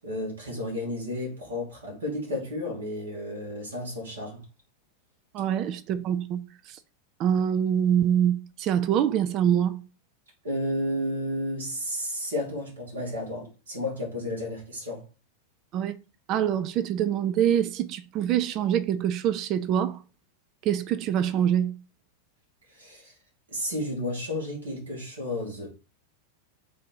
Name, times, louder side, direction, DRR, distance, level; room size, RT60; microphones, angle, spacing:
voice 1, 0.0-4.4 10.4-15.1 22.7-23.1 23.5-25.7, left 1 dB, 70° right, 1.6 m, -32 dB
voice 2, 5.3-6.4 6.7-6.8 7.2-9.8 15.7-15.9 16.3-20.0 20.6-21.8, right 9 dB, 35° right, 0.3 m, -25 dB
3.5 x 2.7 x 3.8 m
figure-of-eight pair, 90°, 0 cm